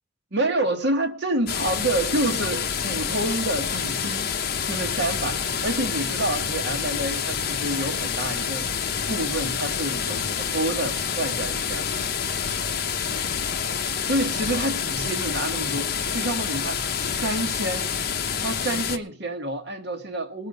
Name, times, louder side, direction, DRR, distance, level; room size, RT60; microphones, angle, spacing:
voice 1, 0.3-4.3 4.7-8.7 9.1-11.9 14.0-16.8 17.1-17.9 18.4-20.5, right 1 dB, 65° right, 1.6 m, -28 dB
sound 1, 1.5-19.0, left 7 dB, 55° left, 0.9 m, -27 dB
20.0 x 6.9 x 5.4 m
head